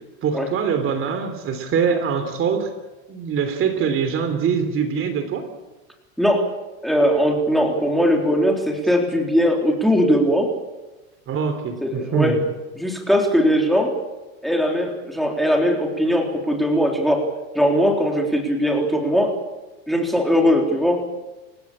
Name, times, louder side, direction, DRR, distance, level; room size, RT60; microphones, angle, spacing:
voice 1, 0.2-2.7 3.1-5.4 11.3-12.4, right 6 dB, 35° right, 8 dB, 3.3 m, -23 dB
voice 2, 6.2-6.5 6.8-10.5 11.8-12.4 12.8-13.9 14.4-17.3 17.6-19.3 19.9-21.0, equal, ahead, 1 dB, 3.9 m, -20 dB
29.0 x 16.0 x 8.8 m, 1.1 s
supercardioid pair, 135°, 38 cm